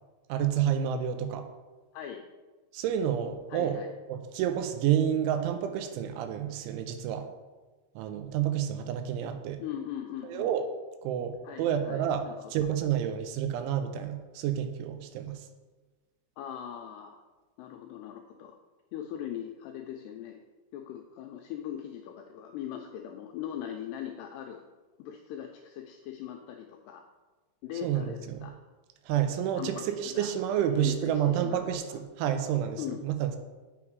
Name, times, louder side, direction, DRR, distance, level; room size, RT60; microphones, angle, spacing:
voice 1, 0.3-1.5 2.7-3.8 4.1-7.3 8.0-9.6 10.2-10.7 11.0-12.2 12.5-15.5 27.8-28.5 29.1-33.4, right 10 dB, 90° right, 8 dB, 3.1 m, -29 dB
voice 2, 1.9-2.2 3.5-3.9 9.6-10.5 11.4-12.4 16.4-17.2 17.6-18.6 18.9-20.4 20.7-24.6 25.0-27.0 27.6-28.5 29.6-32.0 32.8-33.0, left 10 dB, 85° left, 3 dB, 2.4 m, -40 dB
7.3 x 6.4 x 4.6 m, 1.2 s
omnidirectional pair, 5.4 m